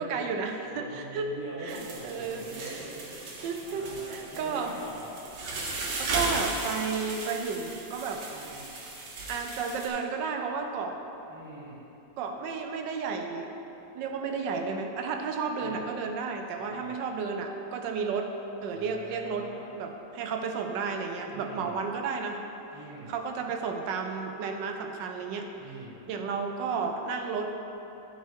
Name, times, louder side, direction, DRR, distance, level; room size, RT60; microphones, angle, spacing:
voice 1, 0.0-1.3 1.6-2.8 3.4-4.7 6.0-8.2 9.3-11.0 12.2-13.5 13.9-18.3 18.6-22.4 23.1-25.5 26.1-27.5, right 5 dB, 90° right, 4 dB, 1.3 m, -32 dB
voice 2, 0.7-3.0 3.6-5.1 8.3-8.7 11.3-11.8 15.6-15.9 16.6-17.0 18.7-19.7 21.3-21.7 22.7-23.1 25.6-26.0, right 1 dB, 10° right, -7 dB, 1.4 m, -43 dB
sound 1, 1.7-9.9, right 2 dB, 70° right, 1.6 m, -36 dB
10.0 x 4.5 x 4.7 m, 3.0 s
omnidirectional pair, 1.9 m